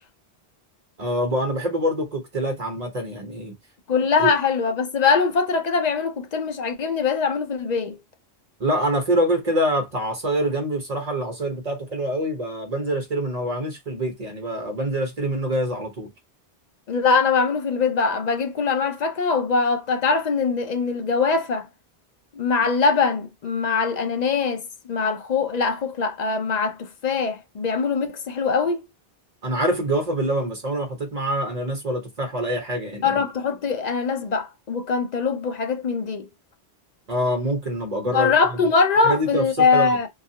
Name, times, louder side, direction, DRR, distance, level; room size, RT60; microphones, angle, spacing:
voice 1, 1.0-3.5 4.2-4.3 8.6-16.1 29.4-33.2 37.1-38.7 39.0-40.0, right 1 dB, 40° right, 1.0 m, -25 dB
voice 2, 3.9-8.0 16.9-21.7 22.4-28.8 33.0-36.3 38.1-40.1, left 5 dB, 50° left, 0.5 m, -22 dB
3.1 x 2.3 x 2.7 m
omnidirectional pair, 1.1 m